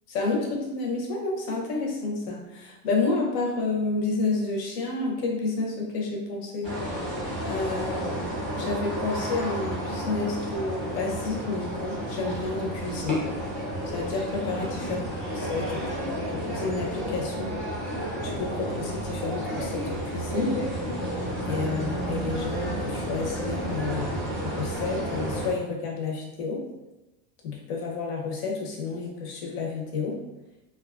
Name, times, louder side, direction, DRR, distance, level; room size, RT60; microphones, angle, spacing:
voice 1, 0.1-6.7 7.5-8.2 8.5-13.3 13.9-15.1 15.3-17.5 18.2-20.6 21.5-24.2 24.4-26.6 27.4-30.2, left 3 dB, 80° left, -1 dB, 0.9 m, -30 dB
sound 1, 6.6-25.5, right 1 dB, ahead, 0.6 m, -31 dB
2.7 x 2.3 x 2.4 m, 1.0 s
supercardioid pair, 170°, 45 cm